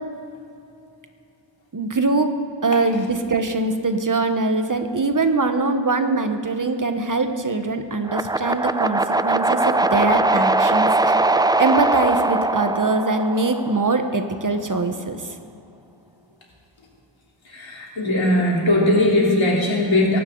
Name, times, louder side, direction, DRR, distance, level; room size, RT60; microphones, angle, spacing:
voice 1, 1.7-2.4 2.6-11.2 11.6-15.3, right 3 dB, 45° right, 7 dB, 1.2 m, -22 dB
sound 1, 8.0-14.2, right 2 dB, 10° right, 0.3 m, -21 dB
voice 2, 17.5-20.2, left 1 dB, 80° left, -3 dB, 3.5 m, -19 dB
23.5 x 12.0 x 3.9 m, 2.6 s
wide cardioid pair, 80°, 46 cm